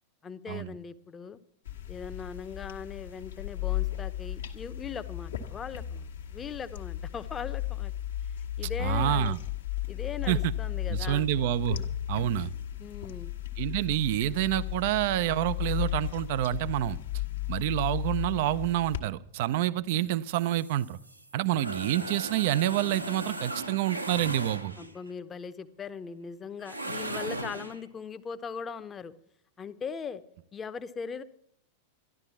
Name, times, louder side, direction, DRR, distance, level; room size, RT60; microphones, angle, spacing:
voice 1, 0.2-1.4 1.9-7.9 8.6-9.4 9.9-11.3 12.8-13.3 24.8-29.1 29.6-30.2 30.5-31.2, left 6 dB, 20° left, 12 dB, 0.8 m, -39 dB
sound 1, 1.7-19.0, left 12 dB, 65° left, 1.3 m, -35 dB
voice 2, 8.8-9.4 10.3-10.4 10.9-11.8 12.1-12.5 13.6-17.0 17.5-21.0 21.3-24.7, right 13 dB, 50° right, 17 dB, 0.4 m, -28 dB
sound 2, 20.3-25.1 26.6-27.8, right 1 dB, 85° right, 1.1 m, -38 dB
13.0 x 11.5 x 7.1 m, 0.68 s
figure-of-eight pair, 90°, 0 cm